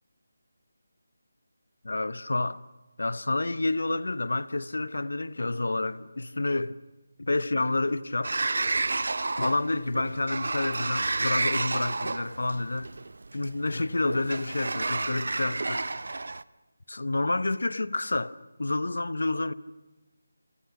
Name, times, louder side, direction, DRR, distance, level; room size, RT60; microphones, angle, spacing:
voice 1, 1.8-2.6 3.0-6.8 7.2-8.4 9.4-12.9 13.3-15.8 16.9-19.5, left 2 dB, 80° left, 1.0 m, -29 dB
Sliding door, 8.2-16.4, right 3 dB, 70° right, 0.7 m, -31 dB
28.0 x 26.5 x 6.1 m
figure-of-eight pair, 170°, 0 cm